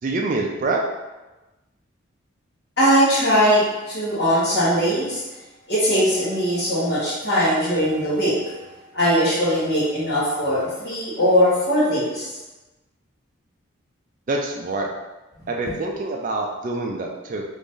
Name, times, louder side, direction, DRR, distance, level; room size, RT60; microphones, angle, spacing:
voice 1, 0.0-0.8 14.3-14.9 15.5-17.4, right 2 dB, 40° right, 1 dB, 0.3 m, -26 dB
voice 2, 2.8-5.2 5.7-8.6 8.9-12.3, equal, 50° left, -9 dB, 1.4 m, -20 dB
3.0 x 2.6 x 3.7 m, 1.1 s
head